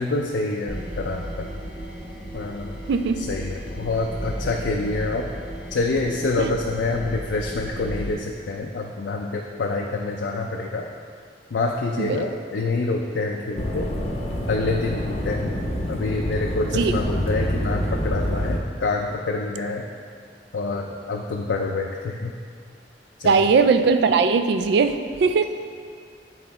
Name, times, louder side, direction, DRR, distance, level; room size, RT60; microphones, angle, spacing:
voice 1, 0.0-1.5 2.3-2.8 3.2-5.3 5.7-10.9 11.5-13.9 14.5-15.6 15.9-19.9 20.5-22.3 23.2-23.4, left 3 dB, 70° left, 0 dB, 0.4 m, -27 dB
sound 1, 0.7-8.1, equal, 5° right, 1.2 m, -34 dB
voice 2, 2.9-3.2 6.4-6.5 12.0-12.3 16.7-16.9 23.2-25.4, right 4 dB, 70° right, 9 dB, 0.3 m, -19 dB
sound 2, 13.6-18.6, equal, 35° left, 0.7 m, -27 dB
7.7 x 3.8 x 4.2 m, 2.2 s
head